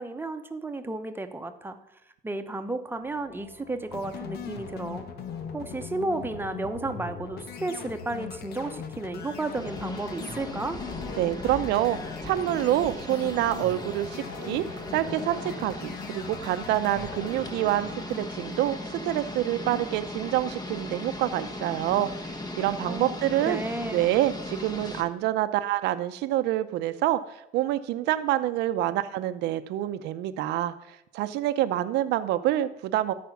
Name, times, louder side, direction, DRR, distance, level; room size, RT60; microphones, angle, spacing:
voice 1, 0.0-1.8 2.2-5.0 5.5-10.8 22.9-23.1 23.4-24.0, right 2 dB, 10° right, 8 dB, 0.9 m, -33 dB
sound 1, 2.8-18.3, left 2 dB, 50° left, 2.4 m, -48 dB
sound 2, 3.9-19.3, left 7 dB, 70° left, 1.1 m, -41 dB
sound 3, 9.5-25.0, left 2 dB, 25° left, 1.1 m, -38 dB
voice 2, 11.2-14.6 14.9-23.6 23.9-33.1, right 13 dB, 85° right, 12 dB, 0.6 m, -27 dB
13.0 x 5.1 x 5.8 m, 0.81 s
cardioid pair, 110°, 17 cm